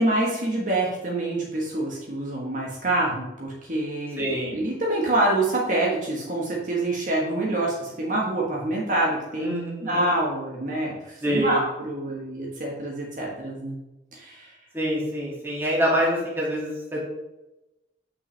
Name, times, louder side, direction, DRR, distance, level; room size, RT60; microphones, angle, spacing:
voice 1, 0.0-4.2 4.5-9.5 9.8-13.8 14.1-14.6, right 1 dB, 45° right, -3 dB, 1.3 m, -26 dB
voice 2, 4.2-4.5 9.4-10.0 11.2-11.6 14.7-17.0, equal, 15° right, -5 dB, 2.2 m, -26 dB
7.7 x 5.9 x 3.4 m, 0.96 s
head